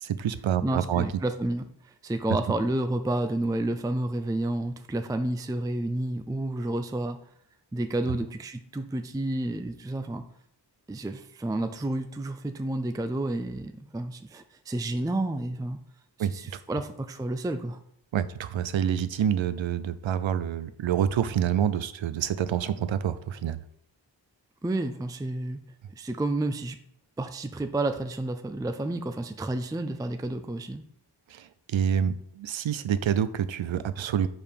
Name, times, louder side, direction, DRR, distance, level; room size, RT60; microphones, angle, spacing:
voice 1, 0.0-1.0 8.1-8.2 16.2-16.3 18.1-23.6 31.3-34.3, right 9 dB, 90° right, 13 dB, 0.5 m, -27 dB
voice 2, 0.6-7.2 7.7-10.3 10.9-15.8 16.2-17.8 24.6-25.6 26.0-26.8 27.2-30.8, right 1 dB, 10° right, 8 dB, 0.4 m, -30 dB
5.4 x 4.7 x 5.2 m, 0.70 s
wide cardioid pair, 55°, 45 cm